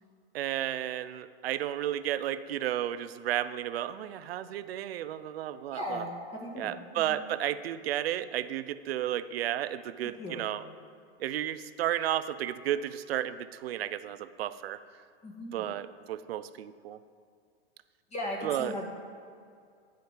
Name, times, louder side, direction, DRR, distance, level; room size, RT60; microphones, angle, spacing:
voice 1, 0.3-6.1 6.6-10.6 11.2-14.8 15.5-17.0 18.4-18.7, right 12 dB, 70° right, 14 dB, 0.6 m, -33 dB
voice 2, 5.7-7.2 10.2-10.5 15.2-15.7 18.1-18.9, left 1 dB, 20° left, -1 dB, 1.6 m, -37 dB
12.0 x 5.1 x 7.4 m, 2.2 s
hypercardioid pair, 145°, 32 cm